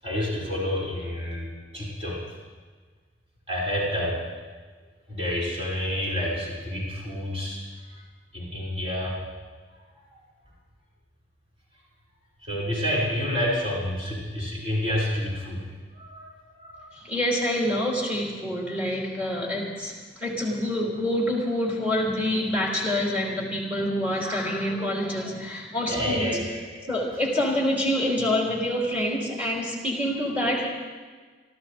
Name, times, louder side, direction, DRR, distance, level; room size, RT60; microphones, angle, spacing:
voice 1, 0.0-1.5 1.7-2.2 3.5-4.2 5.1-7.6 8.3-9.3 12.4-15.6 15.9-16.4 16.6-16.8 25.9-26.8, equal, 35° right, -6 dB, 6.3 m, -29 dB
voice 2, 16.9-26.4 26.9-30.7, left 1 dB, 10° right, -3 dB, 3.4 m, -26 dB
28.0 x 13.5 x 3.5 m, 1.5 s
head